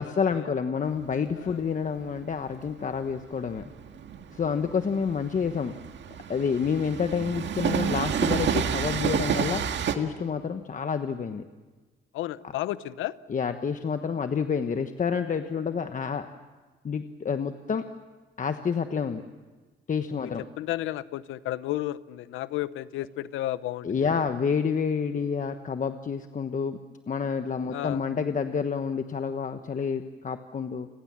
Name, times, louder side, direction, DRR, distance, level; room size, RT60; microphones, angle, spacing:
voice 1, 0.0-3.6 4.3-5.7 6.3-9.6 9.9-11.5 13.3-16.3 16.8-17.9 18.4-19.2 19.9-20.4 23.8-26.8 27.1-30.9, left 6 dB, 40° left, 8 dB, 1.2 m, -28 dB
Train, 0.9-10.0, right 8 dB, 65° right, 1.9 m, -30 dB
voice 2, 12.1-13.2 20.2-20.3 20.6-24.2 27.7-28.0, left 14 dB, 90° left, 16 dB, 0.8 m, -33 dB
30.0 x 21.5 x 7.5 m, 1.3 s
cardioid pair, 90°, 20 cm